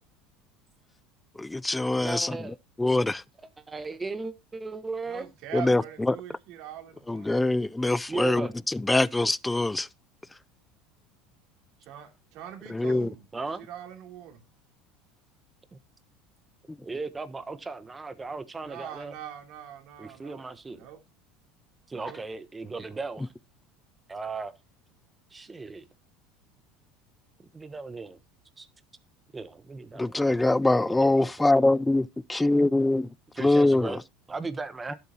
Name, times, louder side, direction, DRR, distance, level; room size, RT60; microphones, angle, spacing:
voice 1, 1.4-2.4 2.8-3.2 5.5-5.8 6.1-6.2 7.1-8.5 8.9-9.9 12.7-13.1 30.0-33.1 33.4-33.9, left 2 dB, 10° left, 0.4 m, -23 dB
voice 2, 2.0-2.6 3.0-3.1 3.4-5.3 8.1-8.5 13.3-13.6 15.7-15.8 16.8-19.2 20.0-20.9 21.9-23.3 24.1-24.5 25.3-25.9 27.4-28.2 28.6-28.7 29.3-30.5 30.8-31.5 33.3-34.0 34.3-35.0, right 3 dB, 20° right, 1.2 m, -37 dB
voice 3, 5.1-7.5 11.8-13.2 13.6-14.4 18.7-20.4 20.8-21.0 21.9-22.2, right 10 dB, 60° right, 3.0 m, -42 dB
11.5 x 8.0 x 2.9 m
supercardioid pair, 95°, 0 cm